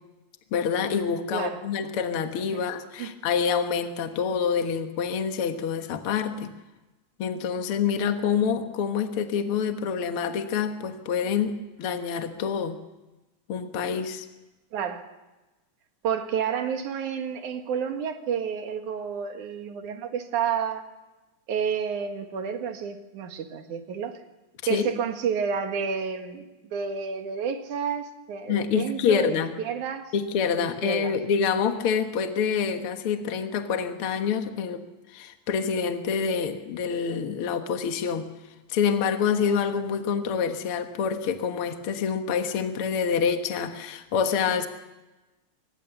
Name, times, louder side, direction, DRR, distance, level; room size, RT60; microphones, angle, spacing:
voice 1, 0.5-6.5 7.2-12.8 13.5-14.3 24.7-24.8 28.5-29.5 30.1-34.8 35.1-38.3 38.7-44.7, left 6 dB, 50° left, 6 dB, 2.1 m, -27 dB
voice 2, 14.7-15.0 16.0-20.8 21.5-24.2 24.7-30.1 30.6-31.1, right 7 dB, 75° right, 6 dB, 3.2 m, -30 dB
25.0 x 20.0 x 7.1 m, 1.1 s
omnidirectional pair, 3.5 m